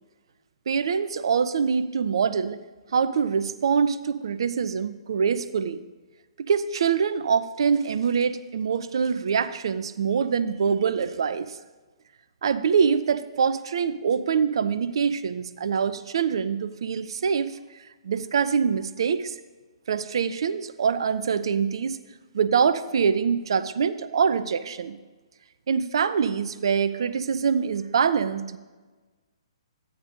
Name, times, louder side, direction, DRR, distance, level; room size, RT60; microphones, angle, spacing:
voice 1, 0.7-2.6 2.9-5.8 6.5-11.6 12.4-17.6 18.0-19.4 19.9-22.0 22.3-25.0 25.7-28.6, right 6 dB, 60° right, 14 dB, 0.5 m, -24 dB
13.0 x 9.4 x 2.5 m, 1.3 s
figure-of-eight pair, 125°, 3 cm